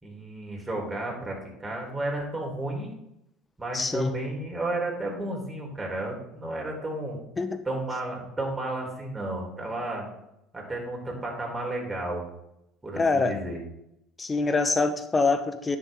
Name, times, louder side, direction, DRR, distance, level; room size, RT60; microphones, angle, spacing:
voice 1, 0.0-2.9 3.6-7.2 7.6-10.1 10.5-12.2 12.8-13.6, right 2 dB, 15° right, -1 dB, 3.8 m, -32 dB
voice 2, 3.7-4.2 7.4-7.6 13.0-13.4 14.2-15.8, left 3 dB, 25° left, 9 dB, 1.0 m, -25 dB
10.5 x 6.9 x 3.7 m, 0.83 s
hypercardioid pair, 75°, 0 cm